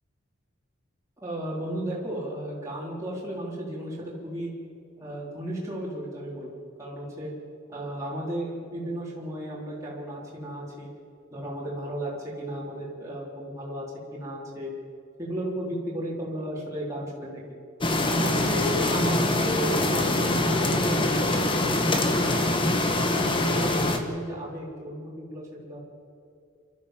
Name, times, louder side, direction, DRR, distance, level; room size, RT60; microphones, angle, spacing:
voice 1, 1.2-4.5 5.0-6.5 6.8-7.3 7.7-10.9 11.3-13.8 14.1-14.7 15.2-17.4 18.0-22.4 22.8-25.8, right 1 dB, 15° right, -6 dB, 4.2 m, -34 dB
sound 1, 17.8-24.0, left 2 dB, 25° left, 1.4 m, -24 dB
28.0 x 13.0 x 7.5 m, 2.6 s
head